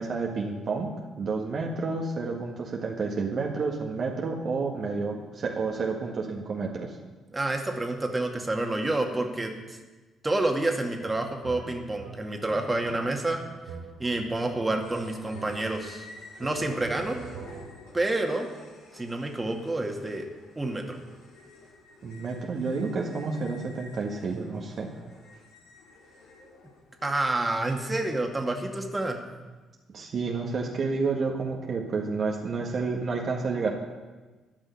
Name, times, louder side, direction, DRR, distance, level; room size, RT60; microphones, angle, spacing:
voice 1, 0.0-6.9 22.0-24.9 29.9-33.7, right 4 dB, 50° right, 0 dB, 1.7 m, -30 dB
voice 2, 7.3-9.8 10.2-13.4 14.0-16.1 16.4-17.2 17.9-18.5 18.9-20.2 20.6-21.0 27.0-29.2, right 2 dB, 20° right, 2 dB, 2.3 m, -28 dB
sound 1, 11.0-16.0 16.4-17.9, right 4 dB, 70° right, 3.8 m, -44 dB
sound 2, 14.8-27.3, left 3 dB, 65° left, 3.0 m, -51 dB
13.5 x 6.2 x 9.9 m, 1.2 s
figure-of-eight pair, 45°, 0 cm